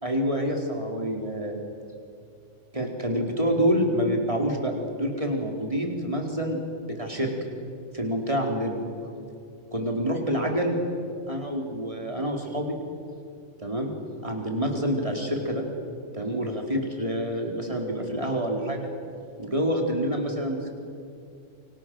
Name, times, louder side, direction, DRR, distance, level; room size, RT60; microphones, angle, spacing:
voice 1, 0.0-1.5 2.7-6.6 7.0-7.3 7.9-8.8 9.7-10.8 11.3-12.8 13.6-13.9 14.2-15.6 16.1-18.9 19.4-20.7, equal, 25° right, 1 dB, 4.3 m, -27 dB
30.0 x 24.0 x 7.9 m, 2.4 s
omnidirectional pair, 1.3 m